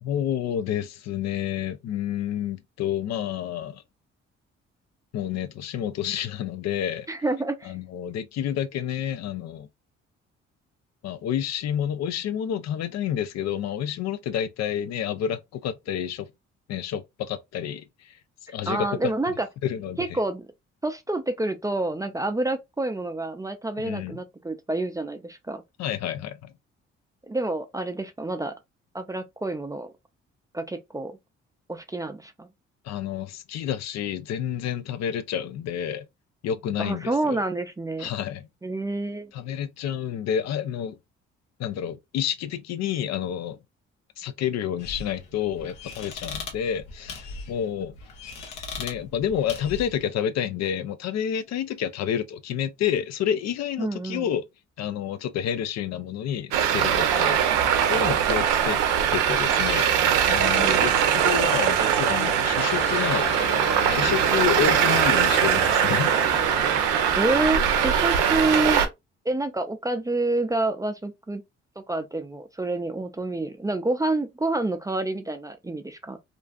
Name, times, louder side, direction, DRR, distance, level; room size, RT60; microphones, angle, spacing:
voice 1, 0.0-3.8 5.1-7.1 7.6-9.7 11.0-16.3 16.7-18.2 18.5-19.1 19.6-20.2 23.8-24.2 25.8-26.5 32.8-36.1 36.4-37.4 38.0-38.5 39.3-41.0 41.6-43.6 44.2-48.0 48.8-54.4 54.8-58.8 59.1-59.9 60.3-63.3 63.9-66.1, left 9 dB, 65° left, 0.4 m, -29 dB
voice 2, 7.1-7.8 18.7-19.5 20.0-20.5 20.8-25.6 27.3-28.5 28.9-29.9 30.5-31.2 31.7-32.5 36.8-38.1 38.6-39.3 53.8-54.3 60.6-61.1 67.1-68.9 69.3-71.4 71.9-76.2, right 2 dB, 10° right, 0.4 m, -28 dB
sound 1, 44.8-50.0, left 4 dB, 85° left, 0.8 m, -39 dB
Traffic noise roadway noise, 56.5-68.9, right 8 dB, 85° right, 0.5 m, -21 dB
sound 2, 62.1-68.4, left 3 dB, 35° left, 1.0 m, -35 dB
2.5 x 2.3 x 2.2 m
supercardioid pair, 55°, 30 cm